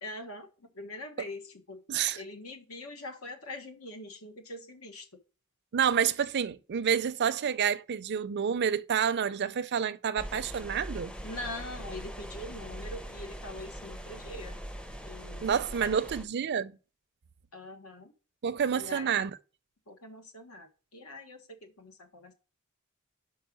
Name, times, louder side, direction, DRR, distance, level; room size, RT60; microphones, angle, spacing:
voice 1, 0.0-1.8 2.1-5.1 11.2-14.6 15.1-15.5 15.8-16.0 17.5-18.1 18.7-19.3 19.9-22.3, left 2 dB, 80° left, 1.5 m, -43 dB
voice 2, 5.7-11.1 15.4-16.8 18.4-19.3, right 7 dB, 50° right, 0.5 m, -28 dB
sound 1, 10.2-16.2, equal, 5° left, 0.6 m, -42 dB
5.5 x 4.8 x 6.1 m
head